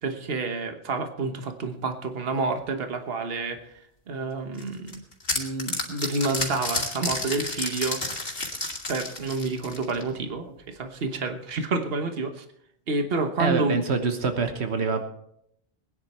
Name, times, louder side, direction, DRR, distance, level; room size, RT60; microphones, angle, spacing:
voice 1, 0.0-3.6 4.1-5.0 5.3-8.1 8.9-12.4 12.9-13.8, right 3 dB, 65° right, 7 dB, 1.4 m, -29 dB
sound 1, 4.6-10.1, left 2 dB, 60° left, 2.5 m, -31 dB
voice 2, 13.4-15.1, right 4 dB, 85° right, 7 dB, 1.5 m, -25 dB
20.5 x 10.0 x 4.3 m, 0.73 s
omnidirectional pair, 1.1 m